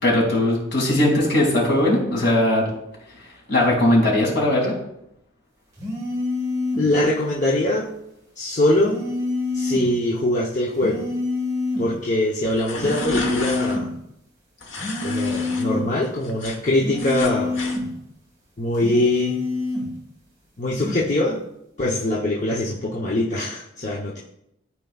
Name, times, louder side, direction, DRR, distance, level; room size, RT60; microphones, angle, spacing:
voice 1, 0.0-2.6 3.5-4.7, left 1 dB, 60° left, -3 dB, 2.5 m, -19 dB
sound 1, 5.8-6.9 8.8-9.9 10.8-11.9 12.8-13.9 14.7-15.9 16.8-17.9 18.7-19.9 20.7-21.1, left 3 dB, 20° right, 1.6 m, -26 dB
voice 2, 6.8-7.9 8.4-9.0 9.5-11.0 11.8-13.9 15.0-17.6 18.6-19.4 20.6-21.4 21.8-24.2, left 1 dB, 40° left, -4 dB, 0.8 m, -22 dB
sound 2, 12.4-13.8 14.6-15.6 16.0-17.8, left 2 dB, 75° left, 1.3 m, -32 dB
13.0 x 4.6 x 2.3 m, 0.80 s
head